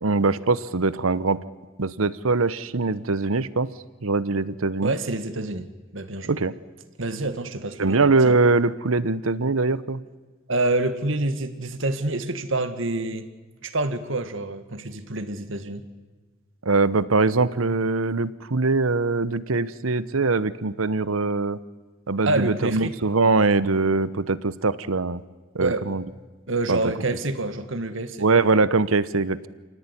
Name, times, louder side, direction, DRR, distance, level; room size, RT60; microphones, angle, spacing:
voice 1, 0.0-1.4 1.8-3.7 4.0-4.9 6.3-6.5 7.8-10.0 16.6-21.6 22.1-25.2 25.5-26.0 26.7-26.8 28.2-29.5, right 3 dB, 85° right, 17 dB, 1.0 m, -22 dB
voice 2, 4.8-5.7 5.9-6.4 7.0-8.0 8.3-8.4 10.5-13.2 13.6-15.8 22.3-23.0 25.6-25.9 26.5-28.3, right 2 dB, 65° right, 11 dB, 1.9 m, -27 dB
29.0 x 18.0 x 9.9 m, 1.3 s
head